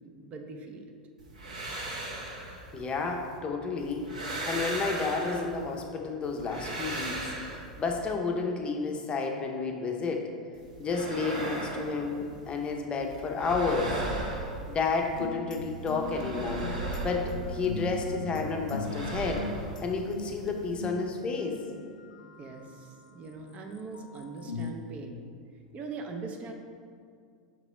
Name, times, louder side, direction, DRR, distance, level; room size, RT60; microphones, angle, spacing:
voice 1, 0.1-0.8 22.4-25.3 25.7-26.5, right 4 dB, 35° right, 3 dB, 0.5 m, -41 dB
sound 1, 1.2-3.4 3.8-5.8 6.2-8.1 10.5-12.7 13.0-15.3 15.6-18.1 18.4-20.8, right 2 dB, 80° right, 0.8 m, -38 dB
voice 2, 2.7-4.1 4.5-7.3 7.8-10.3 10.8-14.0 14.7-16.7 17.0-19.5 19.8-21.6, left 4 dB, 25° left, 2 dB, 0.6 m, -31 dB
sound 2, 15.1-22.9 23.6-24.7, left 3 dB, 80° left, 0.3 m, -39 dB
5.8 x 3.0 x 3.0 m, 2.2 s
hypercardioid pair, 90°, 4 cm